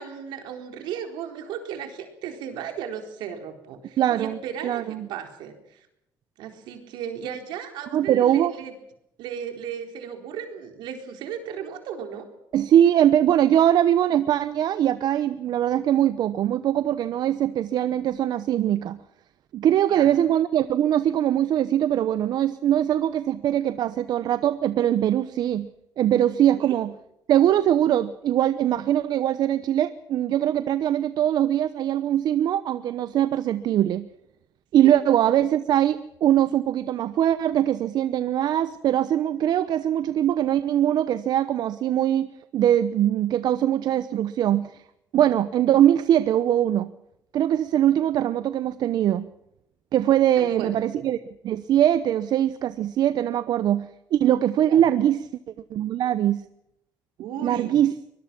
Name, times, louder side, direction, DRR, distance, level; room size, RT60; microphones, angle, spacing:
voice 1, 0.0-5.8 6.4-8.7 9.2-12.3 19.9-20.1 26.6-26.8 34.8-35.0 50.4-51.0 54.6-54.8 57.2-57.8, right 8 dB, 80° right, 5 dB, 4.1 m, -35 dB
voice 2, 4.0-4.4 4.6-5.1 7.9-8.5 12.5-19.0 19.5-25.7 26.0-26.9 27.3-34.1 34.7-42.3 42.5-44.8 45.1-46.9 47.3-49.3 49.9-51.2 51.4-55.3 55.7-56.4 57.4-57.9, right 11 dB, 60° right, 13 dB, 0.9 m, -22 dB
23.5 x 20.5 x 6.1 m, 0.81 s
cardioid pair, 105°, 8 cm